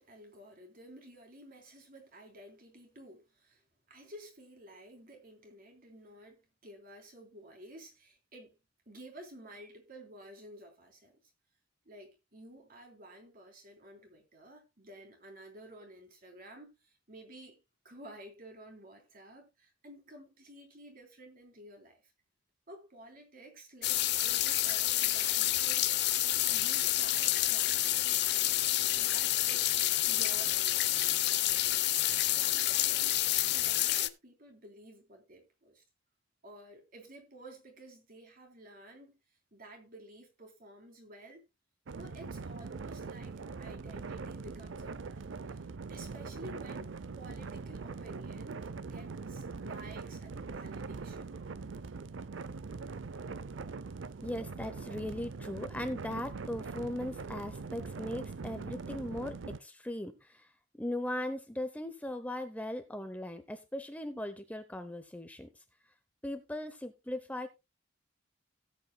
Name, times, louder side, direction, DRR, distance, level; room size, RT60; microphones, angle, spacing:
voice 1, 0.0-8.6 8.8-11.1 11.8-22.0 22.7-25.9 26.5-31.5 32.2-35.8 36.4-39.2 39.5-41.4 41.9-45.4 45.9-51.3, right 1 dB, 50° right, 3.4 m, -52 dB
sound 1, 23.8-34.1, left 14 dB, 60° left, 0.7 m, -29 dB
sound 2, 41.9-59.6, right 4 dB, 75° right, 0.6 m, -42 dB
voice 2, 54.2-60.5 60.8-65.5 66.2-67.5, left 1 dB, 10° left, 0.7 m, -38 dB
17.0 x 8.3 x 2.2 m
head